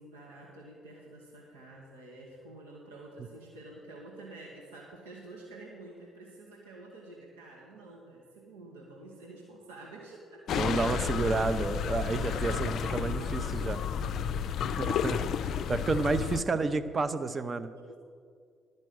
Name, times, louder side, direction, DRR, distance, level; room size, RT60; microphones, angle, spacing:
voice 1, 0.0-11.5 11.9-14.0 16.0-16.1 17.7-18.0, right 2 dB, 80° right, -3 dB, 1.4 m, -49 dB
sound 1, 10.5-16.4, left 8 dB, 55° left, 0.4 m, -31 dB
voice 2, 10.5-13.8 14.8-15.2 15.7-17.7, right 3 dB, 35° right, 12 dB, 0.6 m, -30 dB
11.5 x 5.3 x 7.7 m, 2.1 s
hypercardioid pair, 50°, 0 cm